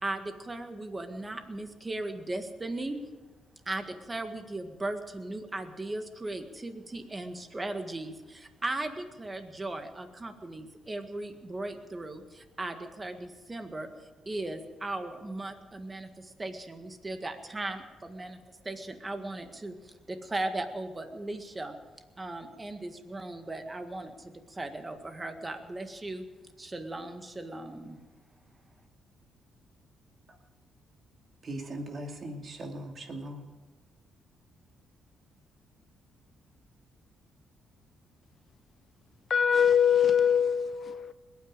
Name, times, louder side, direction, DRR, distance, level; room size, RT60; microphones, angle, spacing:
voice 1, 0.0-3.0 3.7-13.9 14.3-18.4 18.6-21.8 22.2-26.2 26.6-28.0, right 2 dB, 20° right, 1.8 m, -37 dB
voice 2, 31.4-33.5, right 1 dB, 45° right, 2.5 m, -39 dB
voice 3, 39.3-41.1, left 8 dB, 50° left, 0.6 m, -23 dB
20.5 x 9.5 x 7.4 m
cardioid pair, 90°, 0 cm